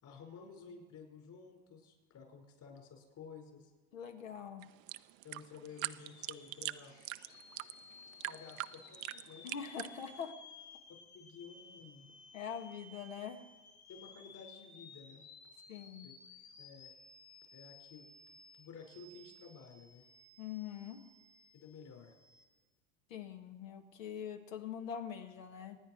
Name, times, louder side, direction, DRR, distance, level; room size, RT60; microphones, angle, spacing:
voice 1, 0.0-3.7 5.2-6.9 8.2-9.5 11.1-12.1 13.9-15.2 16.0-16.1 16.6-16.9 17.5-18.0 18.6-20.0 21.5-22.1, left 5 dB, 50° left, 2 dB, 5.2 m, -53 dB
voice 2, 3.9-4.7 9.4-10.3 12.3-13.5 15.7-16.1 20.4-21.0 23.1-25.8, left 8 dB, 90° left, 5 dB, 1.8 m, -43 dB
sound 1, 4.6-10.3, right 18 dB, 85° right, 0.6 m, -43 dB
sound 2, 5.7-22.4, left 4 dB, 70° left, 3.1 m, -57 dB
25.5 x 9.8 x 4.6 m, 1.3 s
supercardioid pair, 100°, 38 cm